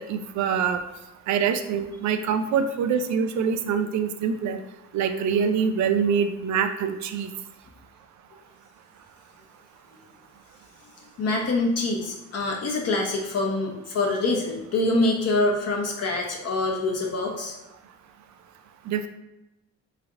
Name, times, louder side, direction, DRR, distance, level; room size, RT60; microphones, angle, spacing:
voice 1, 0.1-0.8 1.3-4.6 4.9-7.3 18.9-19.1, right 7 dB, 70° right, 8 dB, 0.4 m, -25 dB
voice 2, 11.2-17.5, left 2 dB, 55° left, 0 dB, 0.9 m, -25 dB
3.7 x 3.3 x 2.4 m, 0.94 s
cardioid pair, 90°, 30 cm